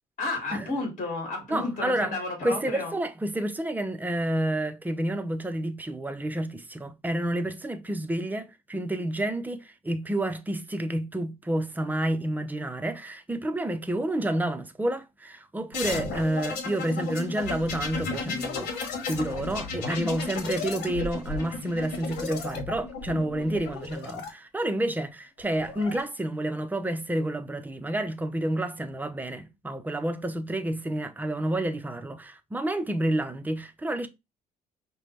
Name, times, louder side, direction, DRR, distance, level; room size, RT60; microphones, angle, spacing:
voice 1, 0.2-2.9, left 2 dB, 50° left, 2.5 m, -32 dB
voice 2, 1.5-2.1 2.4-18.7 19.0-34.1, right 1 dB, 10° right, 0.6 m, -29 dB
sound 1, 15.7-24.3 25.4-26.0, left 4 dB, 85° left, 1.1 m, -34 dB
5.5 x 2.2 x 3.4 m
cardioid pair, 110°, 17 cm